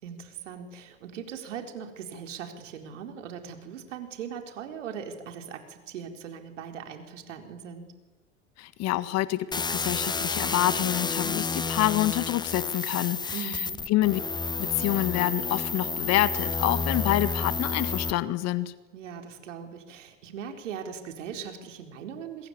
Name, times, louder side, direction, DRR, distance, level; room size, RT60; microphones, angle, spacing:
voice 1, 0.0-7.9 13.3-13.9 18.9-22.5, right 7 dB, 65° right, 5 dB, 4.4 m, -40 dB
voice 2, 8.6-13.5 13.9-14.2 14.6-18.7, left 15 dB, 40° left, 15 dB, 1.6 m, -27 dB
sound 1, 9.5-18.1, left 4 dB, 10° left, 1.1 m, -30 dB
26.5 x 21.5 x 9.7 m, 1.2 s
figure-of-eight pair, 80°, 39 cm